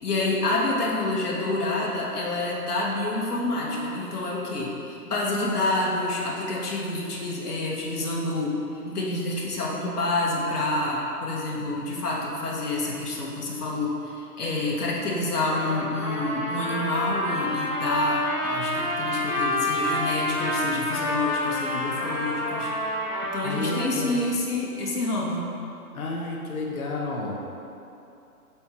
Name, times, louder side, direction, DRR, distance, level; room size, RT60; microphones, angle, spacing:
voice 1, 0.0-22.7 23.3-25.5, left 2 dB, 80° left, -3 dB, 1.4 m, -28 dB
Trumpet, 15.5-23.9, left 1 dB, 15° left, 0.7 m, -28 dB
voice 2, 23.4-24.2 25.9-27.4, left 3 dB, 65° left, -2 dB, 1.1 m, -31 dB
7.1 x 4.5 x 3.1 m, 2.8 s
hypercardioid pair, 145°, 46 cm